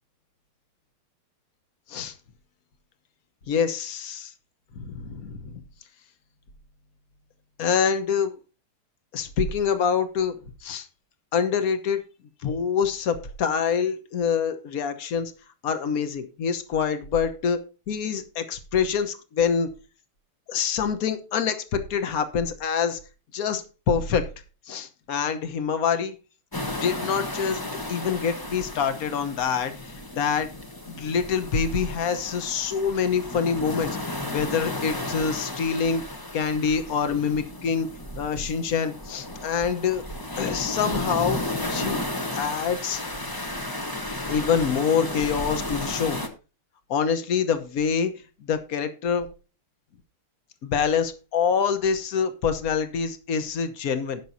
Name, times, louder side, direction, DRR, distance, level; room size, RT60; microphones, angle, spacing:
voice 1, 3.5-4.3 4.8-5.6 7.6-8.4 9.1-10.4 10.6-10.9 11.3-12.0 12.4-15.3 15.6-17.6 17.9-19.7 20.5-23.0 23.3-24.2 24.7-26.1 26.6-27.6 27.9-30.5 30.9-36.0 36.3-37.9 38.2-40.0 40.4-41.4 41.7-42.0 42.3-43.0 44.3-46.2 46.9-48.1 48.4-49.3 50.6-54.2, left 6 dB, 50° left, 9 dB, 1.3 m, -26 dB
sound 1, 26.5-46.3, left 1 dB, 20° left, 0.6 m, -33 dB
17.5 x 6.1 x 2.7 m, 0.34 s
omnidirectional pair, 2.4 m